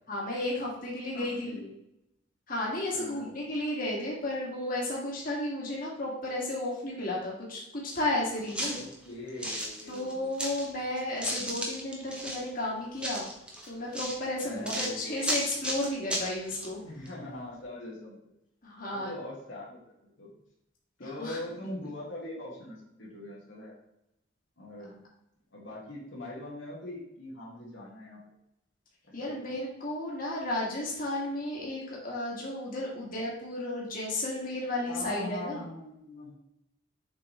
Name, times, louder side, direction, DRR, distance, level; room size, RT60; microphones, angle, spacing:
voice 1, 0.1-1.6 2.5-8.8 9.9-13.3 13.7-16.8 18.6-19.1 21.0-21.4 29.1-35.6, left 1 dB, 45° left, -4 dB, 2.0 m, -33 dB
voice 2, 1.1-1.7 2.9-3.4 8.7-10.3 14.4-15.4 16.8-18.2 18.9-20.3 21.0-23.7 24.6-25.0 25.5-28.2 29.3-29.4 34.9-36.3, left 1 dB, 65° left, -5 dB, 1.8 m, -42 dB
sound 1, 7.9-8.0 8.4-10.7 11.0-12.5 13.0-16.7 17.1-17.2, equal, 5° right, 1.0 m, -34 dB
7.0 x 5.2 x 3.1 m, 0.82 s
head